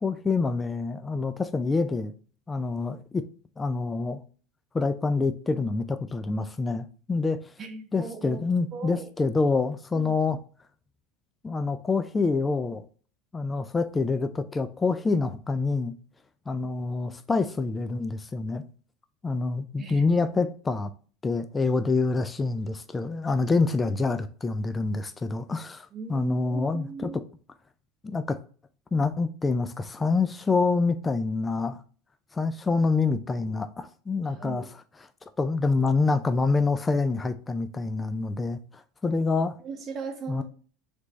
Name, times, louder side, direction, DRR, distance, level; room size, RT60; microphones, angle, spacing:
voice 1, 0.0-2.1 2.5-3.2 3.6-4.2 4.7-7.5 7.9-10.4 11.4-12.8 13.3-15.9 16.5-18.6 19.2-20.9 21.2-27.1 28.0-28.4 28.9-31.8 32.3-34.7 35.4-39.6 40.3-40.4, left 3 dB, 15° left, 0.3 m, -26 dB
voice 2, 7.6-8.5 8.7-9.1 9.9-10.1 19.8-20.0 25.9-27.2 33.4-33.5 34.2-34.7 39.6-40.4, right 5 dB, 30° right, 1.0 m, -38 dB
3.4 x 3.1 x 3.9 m
supercardioid pair, 120°, 0 cm